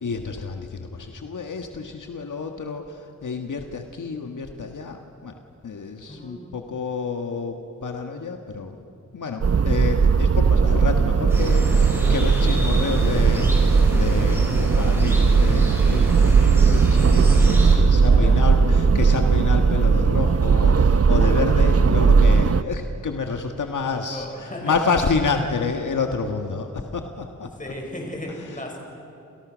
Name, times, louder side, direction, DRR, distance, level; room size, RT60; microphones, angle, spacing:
voice 1, 0.0-5.3 5.6-8.9 9.1-27.5 28.3-28.6, left 4 dB, 75° left, 4 dB, 1.7 m, -29 dB
voice 2, 6.1-6.4 18.1-18.5 23.8-24.7 27.6-28.8, left 1 dB, 25° left, 1 dB, 6.5 m, -35 dB
sound 1, 9.4-22.6, right 5 dB, 50° right, 0.8 m, -17 dB
sound 2, 11.3-17.8, equal, 10° right, 6.6 m, -32 dB
30.0 x 28.5 x 6.3 m, 2.9 s
wide cardioid pair, 115°, 31 cm